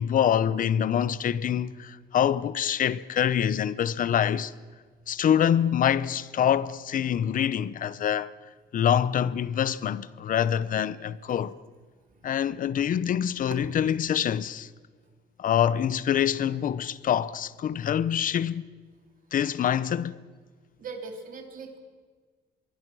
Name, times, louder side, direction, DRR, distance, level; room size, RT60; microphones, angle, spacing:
voice 1, 0.0-4.5 5.1-8.3 8.7-11.5 12.2-14.7 15.4-18.7 19.3-20.2, left 9 dB, 50° left, 0.8 m, -25 dB
voice 2, 20.8-21.8, right 4 dB, 55° right, 3.5 m, -40 dB
25.5 x 22.5 x 6.2 m
cardioid pair, 140°, 17 cm